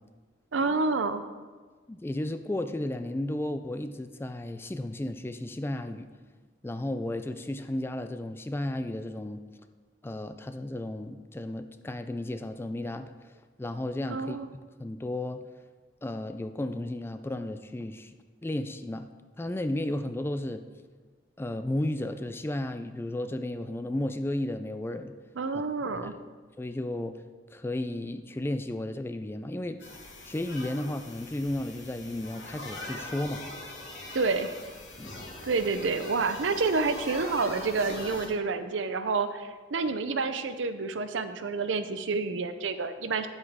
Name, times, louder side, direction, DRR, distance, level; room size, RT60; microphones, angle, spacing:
voice 1, 0.5-1.2 14.1-14.5 25.4-26.1 34.1-34.5 35.4-43.3, right 4 dB, 80° right, 10 dB, 0.6 m, -28 dB
voice 2, 1.9-6.1 6.6-9.4 10.0-13.1 13.6-14.4 14.8-15.4 16.0-18.1 18.4-19.1 19.4-20.6 21.4-25.1 25.9-26.2 26.6-27.2 27.5-30.0 30.3-33.4 35.0-35.1, left 1 dB, 10° left, 9 dB, 0.3 m, -33 dB
sound 1, 29.8-38.3, left 2 dB, 70° left, 1.9 m, -42 dB
9.9 x 8.0 x 3.6 m, 1.4 s
head